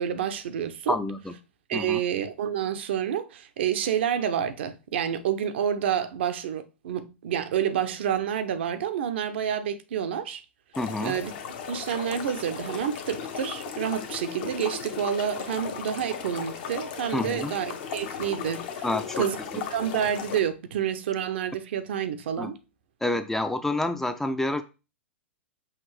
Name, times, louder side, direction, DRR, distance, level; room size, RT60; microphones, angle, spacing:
voice 1, 0.0-1.0 1.7-10.4 11.0-11.3 11.7-18.8 19.2-19.4 19.7-22.6, right 9 dB, 65° right, 0.6 m, -29 dB
voice 2, 0.9-1.3 1.7-2.0 10.8-11.2 17.1-17.5 18.8-19.2 19.5-19.6 22.4-22.5 23.0-24.6, left 2 dB, 5° left, 0.4 m, -28 dB
sound 1, 10.7-20.4, left 7 dB, 55° left, 0.8 m, -36 dB
5.7 x 2.5 x 3.2 m
hypercardioid pair, 105°, 7 cm